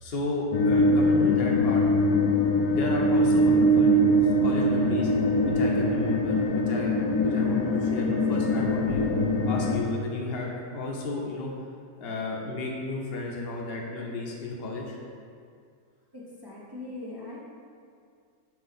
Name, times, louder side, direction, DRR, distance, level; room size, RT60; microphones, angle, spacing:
voice 1, 0.0-1.8 2.7-4.0 4.4-5.1 5.5-9.0 9.5-11.5 12.0-15.0, left 2 dB, 40° left, -2 dB, 1.0 m, -33 dB
sound 1, 0.5-9.8, equal, 75° left, 1.2 m, -22 dB
voice 2, 16.1-17.4, left 2 dB, 20° right, -7 dB, 0.6 m, -40 dB
7.5 x 3.0 x 5.8 m, 2.2 s
omnidirectional pair, 1.9 m